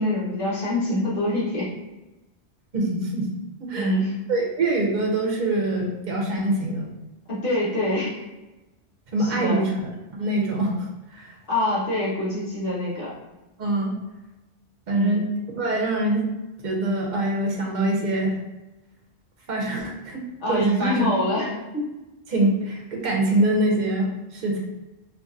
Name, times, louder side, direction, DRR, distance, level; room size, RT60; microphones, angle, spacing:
voice 1, 0.0-1.7 3.7-4.1 7.3-8.2 9.2-9.6 11.5-13.1 14.9-15.2 20.4-21.9, left 1 dB, 55° left, -8 dB, 1.4 m, -25 dB
voice 2, 2.7-3.3 3.6-3.9 4.3-7.0 9.1-9.9 10.2-11.3 13.6-13.9 14.9-15.2 15.6-16.3 16.6-18.4 19.5-20.2 20.5-21.1 21.4-21.5 22.3-24.6, right 2 dB, 45° right, -1 dB, 0.8 m, -24 dB
3.9 x 2.6 x 2.5 m, 1.1 s
omnidirectional pair, 1.2 m